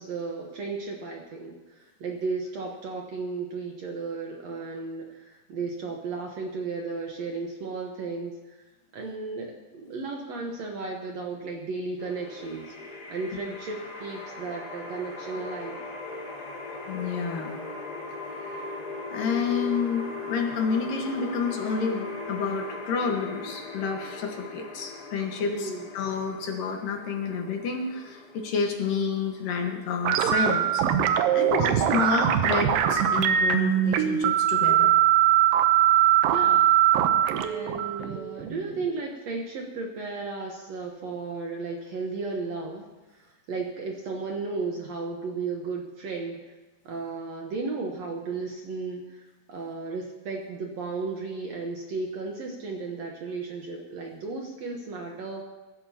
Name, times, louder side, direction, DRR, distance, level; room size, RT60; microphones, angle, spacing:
voice 1, 0.0-8.6 8.9-12.7 13.1-15.8 25.4-25.9 36.3-36.7 37.3-42.8 43.1-46.5 46.9-49.2 49.5-55.4, right 4 dB, 60° right, 1 dB, 2.0 m, -34 dB
sound 1, 12.0-31.0, left 3 dB, 30° left, 2.6 m, -39 dB
voice 2, 16.9-17.5 18.4-18.8 19.1-30.8 31.3-34.9, left 5 dB, 70° left, 2 dB, 3.1 m, -29 dB
sound 2, 30.1-39.0, right 10 dB, 75° right, 2.4 m, -22 dB
23.0 x 13.0 x 2.9 m, 1.2 s
omnidirectional pair, 4.2 m